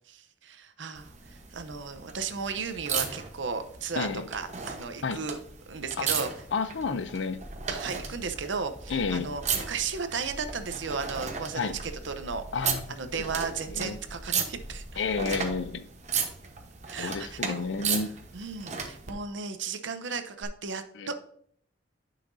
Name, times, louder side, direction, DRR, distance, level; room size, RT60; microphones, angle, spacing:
voice 1, 0.1-6.3 7.7-12.4 12.9-14.8 16.9-18.0 18.3-21.1, right 5 dB, 80° right, 9 dB, 0.7 m, -35 dB
sound 1, 0.9-19.1 20.4-20.5, right 6 dB, 40° right, 1.0 m, -36 dB
voice 2, 6.5-7.4 8.9-9.3 11.5-11.8 12.5-12.8 13.1-13.2 13.7-14.0 15.0-15.9 17.0-18.1 21.0-21.1, left 5 dB, 70° left, 12 dB, 0.5 m, -30 dB
sound 2, 7.3-15.8, equal, ahead, 0.5 m, -45 dB
9.9 x 5.8 x 2.6 m, 0.64 s
head